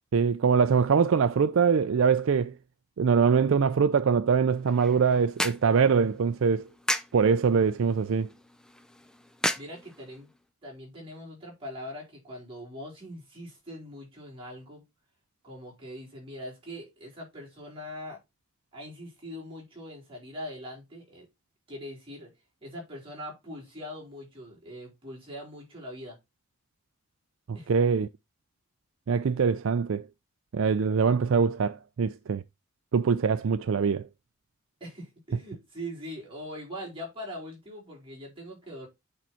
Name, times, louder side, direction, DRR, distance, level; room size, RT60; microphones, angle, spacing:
voice 1, 0.1-2.5 3.0-6.7 7.1-8.3 27.5-28.1 29.1-30.0 30.5-32.4 32.9-34.1, right 6 dB, 65° right, 0.4 m, -23 dB
sound 1, 4.5-10.4, left 1 dB, 5° left, 0.5 m, -36 dB
voice 2, 9.5-10.3 10.6-14.8 15.4-18.2 18.7-21.3 21.7-22.3 22.6-26.2 27.5-27.7 34.8-38.9, equal, 25° right, 4.4 m, -42 dB
8.5 x 4.5 x 4.3 m
head